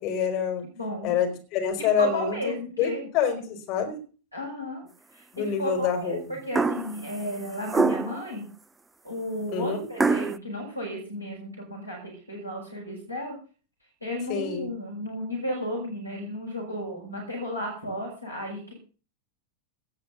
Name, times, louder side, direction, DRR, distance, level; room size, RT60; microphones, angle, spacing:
voice 1, 0.0-0.6 1.0-4.0 5.3-6.4 9.5-9.9 14.3-14.7, left 7 dB, 40° left, 4 dB, 4.7 m, -27 dB
voice 2, 0.8-1.2 2.0-3.1 4.3-4.9 5.1-8.5 9.0-13.4 14.0-18.7, equal, 90° left, -2 dB, 6.0 m, -33 dB
sound 1, 6.5-7.0 7.7-8.2 10.0-10.4, right 3 dB, 10° right, 0.7 m, -24 dB
18.5 x 6.2 x 6.9 m, 0.38 s
figure-of-eight pair, 90°, 0 cm